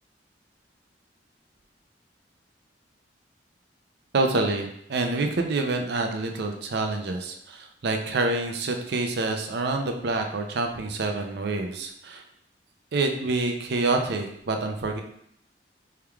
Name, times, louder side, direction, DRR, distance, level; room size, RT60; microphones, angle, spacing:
voice 1, 4.1-12.2 12.9-15.0, right 3 dB, 65° right, 4 dB, 0.5 m, -27 dB
4.5 x 3.5 x 2.3 m, 0.72 s
head